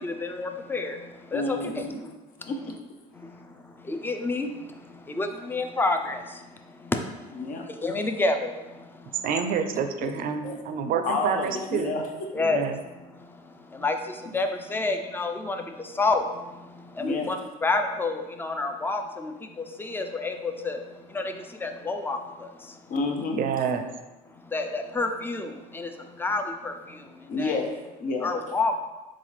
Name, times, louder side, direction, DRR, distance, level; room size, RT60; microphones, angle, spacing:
voice 1, 0.0-2.1 2.4-2.5 3.1-9.3 12.3-22.9 24.3-27.6 28.2-28.9, left 3 dB, 10° left, 6 dB, 0.4 m, -30 dB
voice 2, 1.3-2.0 2.5-2.7 7.4-7.7 10.0-10.1 10.4-10.6 11.0-12.5 17.0-17.3 22.9-23.5 27.3-28.3, left 3 dB, 55° left, 3 dB, 0.7 m, -30 dB
voice 3, 9.2-11.9 12.4-12.8 23.3-23.8, right 7 dB, 60° right, 7 dB, 0.5 m, -28 dB
4.0 x 3.7 x 3.1 m, 1.1 s
cardioid pair, 105°, 17 cm